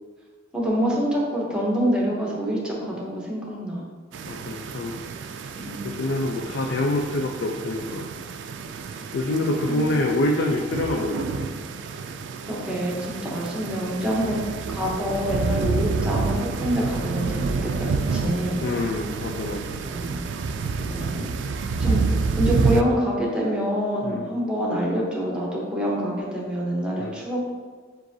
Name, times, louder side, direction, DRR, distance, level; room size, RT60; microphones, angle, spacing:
voice 1, 0.5-3.8 5.6-5.9 9.6-10.0 12.4-14.4 14.7-18.6 19.9-20.2 20.9-21.3 21.8-27.4, equal, 5° right, -4 dB, 0.8 m, -26 dB
sound 1, 4.1-22.8, right 4 dB, 85° right, 0.3 m, -29 dB
voice 2, 4.3-5.0 5.4-5.5 5.8-8.1 8.9-11.5 15.8-16.0 18.6-19.8 24.0-24.3 27.0-27.1, left 1 dB, 75° left, 1 dB, 0.4 m, -26 dB
7.4 x 2.5 x 2.7 m, 1.5 s
head